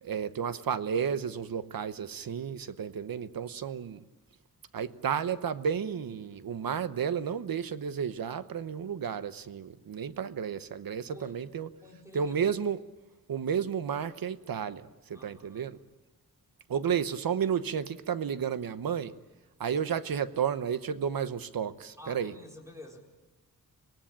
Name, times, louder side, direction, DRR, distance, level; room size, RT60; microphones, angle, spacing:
voice 1, 0.0-4.0 4.7-11.7 12.1-12.8 13.3-15.8 16.7-19.1 19.6-22.3, right 7 dB, 75° right, 13 dB, 1.0 m, -32 dB
voice 2, 11.1-11.4 11.8-12.4 15.1-15.7 22.0-23.0, left 1 dB, 10° right, 1 dB, 4.3 m, -49 dB
25.5 x 19.0 x 8.7 m, 1.2 s
wide cardioid pair, 115°, 35 cm